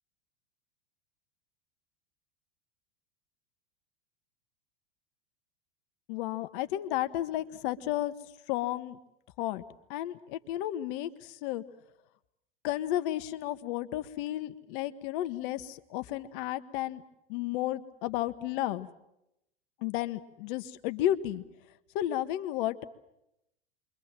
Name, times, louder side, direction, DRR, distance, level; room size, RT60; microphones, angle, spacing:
voice 1, 6.1-8.1 8.5-9.0 9.4-9.6 9.9-11.6 12.6-17.0 17.3-18.9 19.8-21.4 21.9-22.8, left 13 dB, 60° left, 12 dB, 1.5 m, -32 dB
27.5 x 23.5 x 7.6 m, 0.85 s
hypercardioid pair, 90°, 30 cm